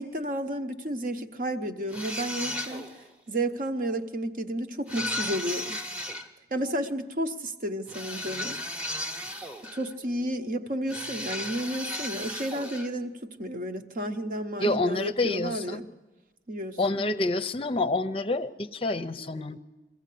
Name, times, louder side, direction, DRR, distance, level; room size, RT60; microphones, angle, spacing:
voice 1, 0.0-2.9 3.3-5.8 6.5-8.6 9.7-15.9 16.5-17.0, right 1 dB, 50° right, 7 dB, 1.0 m, -32 dB
sound 1, 1.9-3.1 4.9-6.3 7.9-9.9 10.9-12.9, left 1 dB, 5° right, 0.9 m, -35 dB
voice 2, 14.6-15.8 16.8-19.6, left 2 dB, 30° left, 11 dB, 0.6 m, -28 dB
23.0 x 15.0 x 8.4 m, 1.1 s
head